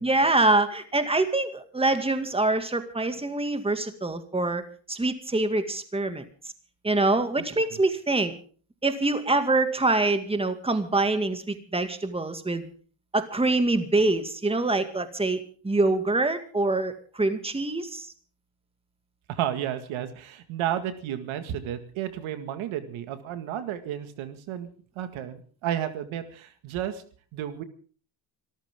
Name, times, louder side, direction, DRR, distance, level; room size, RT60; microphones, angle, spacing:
voice 1, 0.0-4.6 4.9-6.2 6.8-8.3 8.8-12.7 13.1-18.1, right 2 dB, 10° right, 8 dB, 2.2 m, -25 dB
voice 2, 19.3-24.7 25.0-27.0 27.3-27.6, right 10 dB, 85° right, 10 dB, 2.1 m, -32 dB
26.0 x 14.0 x 3.7 m, 0.42 s
cardioid pair, 105°, 47 cm